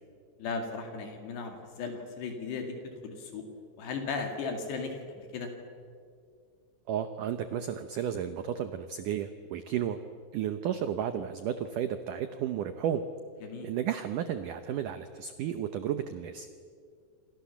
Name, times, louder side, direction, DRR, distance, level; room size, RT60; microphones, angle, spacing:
voice 1, 0.4-2.8 3.0-3.4 3.8-5.5 13.4-13.7, left 4 dB, 75° left, 4 dB, 4.4 m, -36 dB
voice 2, 6.9-10.0 10.3-13.0 13.6-16.5, right 9 dB, 75° right, 9 dB, 1.9 m, -33 dB
28.5 x 27.0 x 7.2 m, 2.2 s
omnidirectional pair, 5.0 m